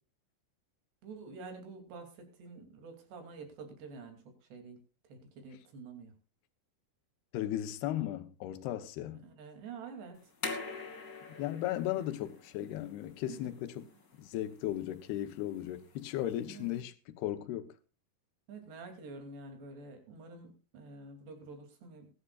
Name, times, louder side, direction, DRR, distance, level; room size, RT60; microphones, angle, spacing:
voice 1, 1.0-2.1 2.4-4.2 4.5-4.8 5.1-6.1 9.2-10.2 11.9-12.0 13.3-13.5 16.5-16.8 18.5-22.1, right 4 dB, 65° right, 4.9 m, -48 dB
voice 2, 7.3-9.2 11.4-13.9 14.2-17.7, left 13 dB, 70° left, 2.7 m, -36 dB
sound 1, 10.1-16.8, left 4 dB, 25° left, 2.1 m, -46 dB
21.0 x 11.5 x 2.4 m
omnidirectional pair, 5.3 m